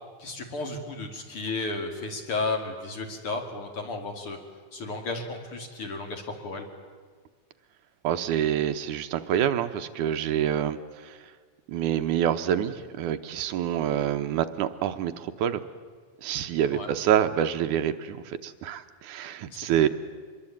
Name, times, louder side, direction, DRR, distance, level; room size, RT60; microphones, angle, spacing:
voice 1, 0.2-4.4 4.7-6.6 16.7-16.9 19.5-19.7, left 3 dB, 45° left, 3 dB, 3.3 m, -33 dB
voice 2, 8.0-11.2 11.7-15.6 16.2-19.9, right 10 dB, 85° right, 9 dB, 2.5 m, -27 dB
25.5 x 21.5 x 8.7 m, 1.5 s
omnidirectional pair, 3.5 m